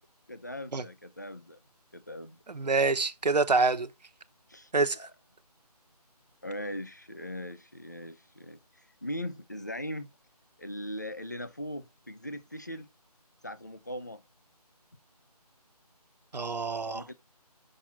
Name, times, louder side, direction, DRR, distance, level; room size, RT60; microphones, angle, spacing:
voice 1, 0.3-1.6 1.9-2.4 4.5-4.7 5.0-5.1 6.4-10.1 10.6-12.9 13.4-14.2 16.9-17.1, equal, 25° left, 0.6 m, -40 dB
voice 2, 2.5-3.9 4.7-5.1 16.3-17.0, right 3 dB, 85° right, 1.0 m, -26 dB
7.6 x 5.8 x 5.9 m
figure-of-eight pair, 180°, 21 cm